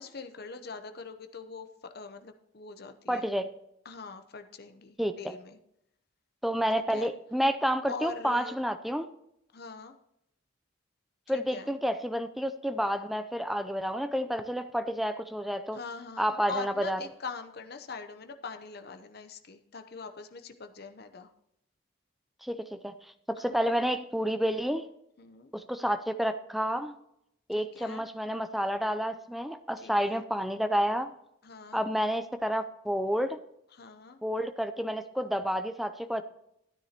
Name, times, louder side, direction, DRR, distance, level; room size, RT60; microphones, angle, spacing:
voice 1, 0.0-3.3 3.8-5.6 6.9-7.1 7.9-8.6 9.5-9.9 11.3-11.8 15.7-21.3 23.4-23.6 25.2-25.5 27.6-28.0 29.8-30.2 31.4-31.8 33.7-34.2, left 4 dB, 50° left, 7 dB, 0.7 m, -43 dB
voice 2, 3.1-3.5 5.0-5.1 6.4-9.1 11.3-15.8 16.2-17.0 22.4-22.9 23.3-24.9 25.5-26.9 27.5-31.1 31.7-33.4 34.2-36.2, equal, ahead, 9 dB, 0.4 m, -30 dB
13.0 x 9.5 x 2.9 m, 0.79 s
head